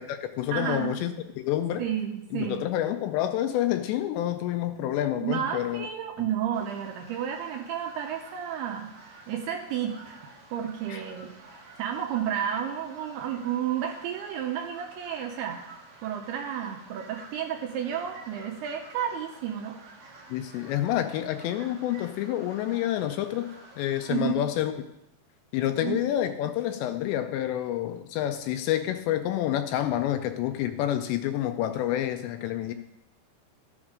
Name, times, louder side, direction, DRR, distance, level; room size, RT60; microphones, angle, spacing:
voice 1, 0.0-1.8 2.3-5.9 10.9-11.0 20.3-23.5 23.8-24.8 25.5-32.7, left 12 dB, 80° left, 8 dB, 2.6 m, -28 dB
voice 2, 0.5-1.0 1.8-2.6 5.2-8.9 9.3-10.2 10.5-11.3 11.8-15.6 16.0-19.8 24.1-24.4 25.8-26.0, right 9 dB, 80° right, 2 dB, 2.5 m, -31 dB
sound 1, 6.5-24.2, right 3 dB, 55° right, 1.7 m, -50 dB
13.5 x 7.2 x 5.0 m, 0.87 s
omnidirectional pair, 5.3 m